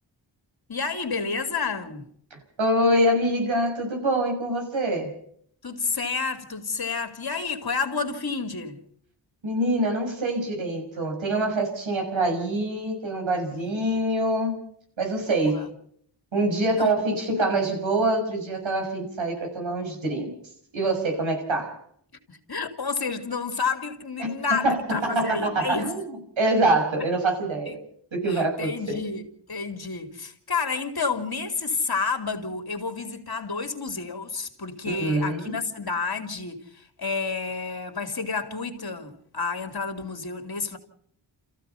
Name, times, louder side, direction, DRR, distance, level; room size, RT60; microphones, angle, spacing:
voice 1, 0.7-2.0 5.6-8.8 15.3-15.7 16.8-16.9 22.3-25.9 27.7-27.8 28.3-29.2 29.5-40.8, left 4 dB, 55° left, 2.9 m, -30 dB
voice 2, 2.3-5.1 9.4-14.6 15.0-15.7 16.3-20.3 20.7-21.8 24.2-27.8 28.1-29.1 34.8-35.6, right 1 dB, 85° right, 6.1 m, -25 dB
30.0 x 15.0 x 5.7 m
cardioid pair, 60°, 45 cm